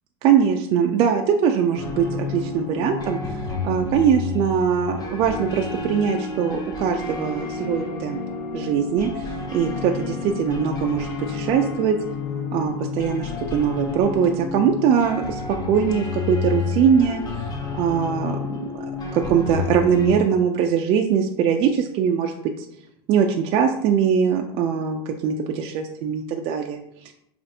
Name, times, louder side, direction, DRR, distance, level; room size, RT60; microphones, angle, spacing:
voice 1, 0.2-8.2 8.5-12.0 12.5-15.4 15.7-17.2 17.7-18.8 19.1-22.7 23.1-26.8, right 7 dB, 40° right, 2 dB, 0.3 m, -22 dB
sound 1, 1.7-20.2, left 5 dB, 25° left, 0.7 m, -30 dB
5.1 x 2.4 x 2.7 m, 0.78 s
supercardioid pair, 120°, 14 cm